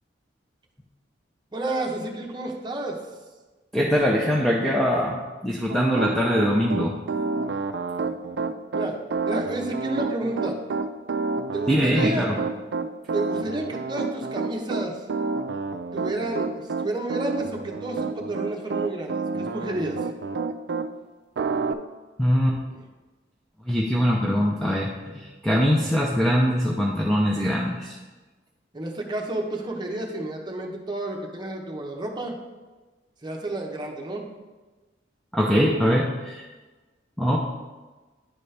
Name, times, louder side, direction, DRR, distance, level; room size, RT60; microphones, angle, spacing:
voice 1, 1.5-3.0 8.7-9.0 9.3-10.6 11.5-12.3 13.1-15.0 15.9-20.1 22.7-22.8 28.7-32.4 33.2-34.2, right 2 dB, 25° right, 0 dB, 0.9 m, -30 dB
voice 2, 3.7-7.0 11.7-12.4 22.2-22.6 23.7-28.0 35.3-36.5 37.2-37.4, equal, ahead, -3 dB, 0.5 m, -22 dB
Piano, 5.7-20.9 21.4-21.7, right 4 dB, 70° right, 0.4 m, -29 dB
10.0 x 4.1 x 3.3 m, 1.2 s
head